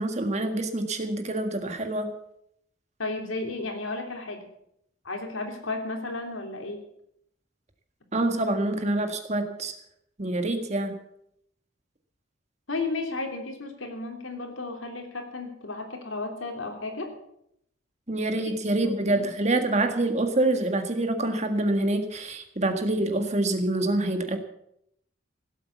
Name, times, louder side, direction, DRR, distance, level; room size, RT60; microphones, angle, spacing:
voice 1, 0.0-2.1 8.1-9.7 10.2-11.0 18.1-24.4, right 2 dB, 35° right, 7 dB, 1.7 m, -26 dB
voice 2, 3.0-4.5 5.0-6.8 12.7-17.2 18.8-19.3, left 3 dB, 80° left, 3 dB, 3.3 m, -33 dB
16.5 x 8.3 x 8.2 m, 0.75 s
head